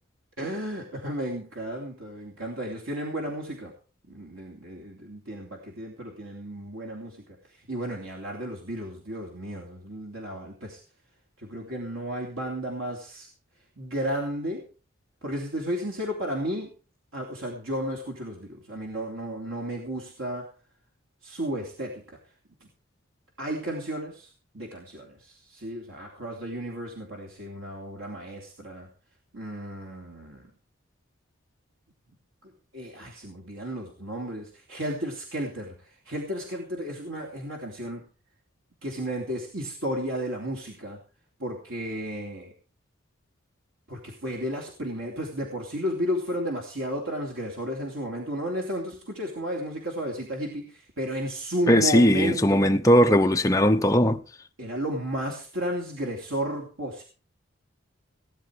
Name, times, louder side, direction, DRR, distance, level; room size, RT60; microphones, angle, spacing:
voice 1, 0.4-3.7 4.1-7.2 7.7-10.8 11.4-13.3 13.8-14.6 15.2-16.7 17.1-20.5 21.2-22.2 23.4-24.3 24.5-28.9 29.3-30.5 32.7-38.0 38.8-41.0 41.4-42.5 43.9-52.6 54.6-57.0, equal, 70° right, 3.0 m, -33 dB
voice 2, 51.7-54.2, equal, 15° left, 0.8 m, -19 dB
17.5 x 10.5 x 4.8 m
head